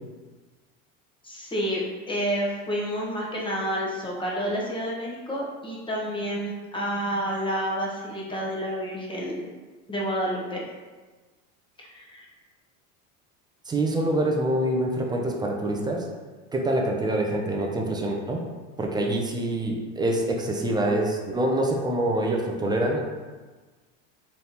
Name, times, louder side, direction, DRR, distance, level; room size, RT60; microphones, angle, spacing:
voice 1, 1.2-9.4 9.9-10.6 11.8-12.3, equal, 15° left, -4 dB, 1.0 m, -29 dB
voice 2, 13.7-16.1 16.5-18.4 18.8-23.0, right 1 dB, 10° right, 0 dB, 0.4 m, -25 dB
4.1 x 3.3 x 2.8 m, 1.3 s
supercardioid pair, 110°, 38 cm